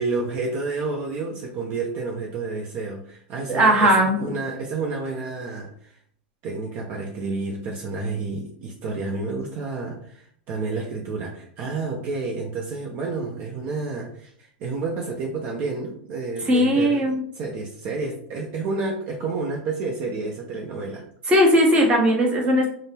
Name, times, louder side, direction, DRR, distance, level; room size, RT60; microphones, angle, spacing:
voice 1, 0.0-6.0 6.4-21.0, right 3 dB, 40° right, 0 dB, 0.6 m, -30 dB
voice 2, 3.5-4.3 16.5-17.2 21.3-22.7, equal, 20° right, -1 dB, 1.0 m, -18 dB
3.5 x 2.0 x 4.2 m, 0.63 s
supercardioid pair, 140°, 6 cm